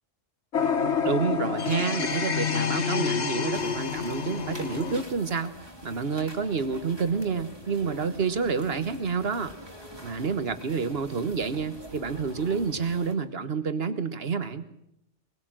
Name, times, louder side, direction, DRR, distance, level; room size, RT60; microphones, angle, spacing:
sound 1, 0.5-5.0, left 6 dB, 70° left, 1.7 m, -28 dB
voice 1, 1.0-5.5 5.8-9.5 10.0-14.6, right 5 dB, 55° right, 11 dB, 1.5 m, -29 dB
sound 2, 3.5-13.1, equal, 20° right, 2.9 m, -45 dB
21.0 x 20.5 x 7.6 m, 0.80 s
omnidirectional pair, 1.2 m